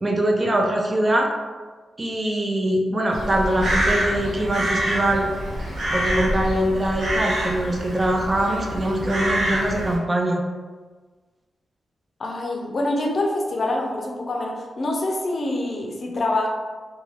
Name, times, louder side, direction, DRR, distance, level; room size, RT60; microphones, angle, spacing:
voice 1, 0.0-1.3 2.0-5.3 5.9-10.4, right 1 dB, 30° right, 1 dB, 0.4 m, -22 dB
Crow, 3.1-9.9, right 1 dB, 75° right, 0.8 m, -26 dB
voice 2, 12.2-16.5, left 2 dB, 55° left, 0 dB, 0.5 m, -25 dB
2.4 x 2.2 x 3.2 m, 1.4 s
cardioid pair, 80°, 0 cm